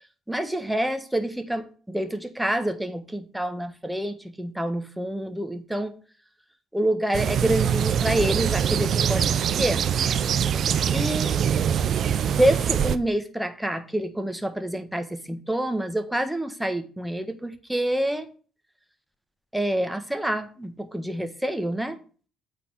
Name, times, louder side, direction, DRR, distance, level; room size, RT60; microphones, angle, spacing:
voice 1, 0.3-5.9 6.7-9.2 9.5-9.9 10.9-11.3 12.2-18.2 19.5-22.0, right 1 dB, 5° right, 9 dB, 1.5 m, -27 dB
sound 1, 7.1-13.0, right 8 dB, 60° right, 0.7 m, -23 dB
8.6 x 4.2 x 6.7 m, 0.39 s
supercardioid pair, 75°, 0 cm